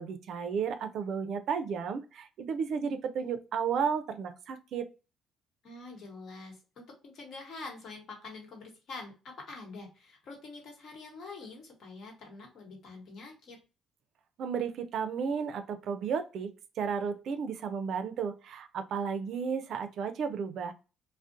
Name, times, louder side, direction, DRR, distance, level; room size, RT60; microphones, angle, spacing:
voice 1, 0.0-4.9 14.4-20.7, right 6 dB, 65° right, 9 dB, 0.4 m, -33 dB
voice 2, 5.6-13.6, left 3 dB, 65° left, 0 dB, 1.1 m, -46 dB
2.4 x 2.0 x 2.5 m, 0.32 s
cardioid pair, 100°, 0 cm